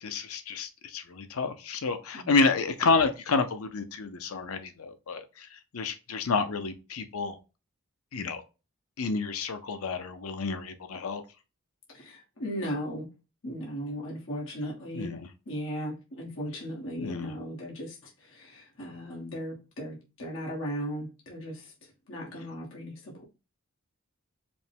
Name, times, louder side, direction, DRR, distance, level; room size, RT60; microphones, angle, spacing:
voice 1, 0.0-7.4 8.1-8.4 9.0-11.2 14.9-15.3 17.0-17.3, left 4 dB, 80° left, 0.6 m, -29 dB
voice 2, 2.1-2.5 11.9-13.1 13.4-15.1 15.5-23.2, equal, 60° left, 1.3 m, -37 dB
5.1 x 2.2 x 3.4 m
head